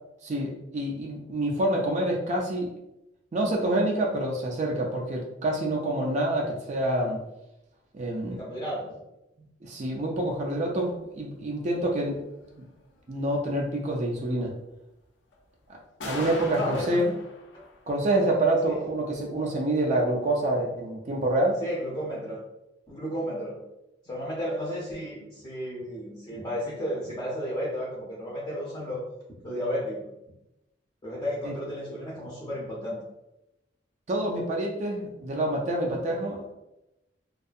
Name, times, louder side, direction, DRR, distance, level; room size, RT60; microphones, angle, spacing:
voice 1, 0.2-2.7 3.3-7.2 7.9-8.4 9.6-12.2 13.1-14.5 16.0-17.1 17.9-21.6 34.1-36.5, right 1 dB, 40° right, -1 dB, 0.4 m, -27 dB
voice 2, 8.3-8.9 16.5-17.1 18.7-18.8 21.6-22.4 22.9-23.6 24.0-29.0 29.4-30.1 31.0-33.0, equal, 20° left, -6 dB, 0.6 m, -33 dB
sound 1, 11.9-12.0 12.5-12.6 15.3-15.4 16.0-17.8, left 3 dB, 70° left, 0.4 m, -37 dB
2.6 x 2.3 x 2.4 m, 0.91 s
head